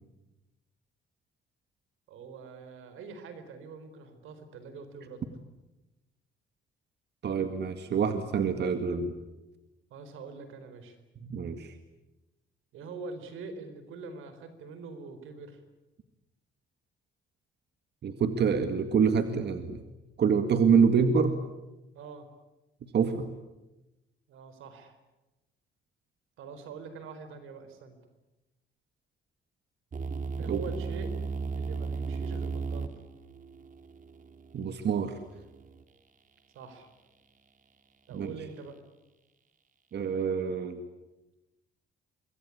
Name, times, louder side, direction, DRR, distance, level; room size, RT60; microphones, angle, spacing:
voice 1, 2.1-5.3 9.9-11.0 12.7-15.6 21.9-22.3 24.3-25.0 26.4-28.0 30.4-31.1 31.5-33.0 36.5-36.9 38.1-38.8, right 4 dB, 85° right, 10 dB, 4.4 m, -44 dB
voice 2, 7.2-9.2 11.2-11.8 18.0-19.9 20.2-21.4 22.8-23.3 30.4-30.7 34.5-35.2 38.1-38.3 39.9-40.8, right 6 dB, 60° right, 8 dB, 2.0 m, -26 dB
sound 1, 29.9-35.8, right 4 dB, 40° right, 2.5 m, -36 dB
25.5 x 22.5 x 9.8 m, 1.0 s
cardioid pair, 90°, 20 cm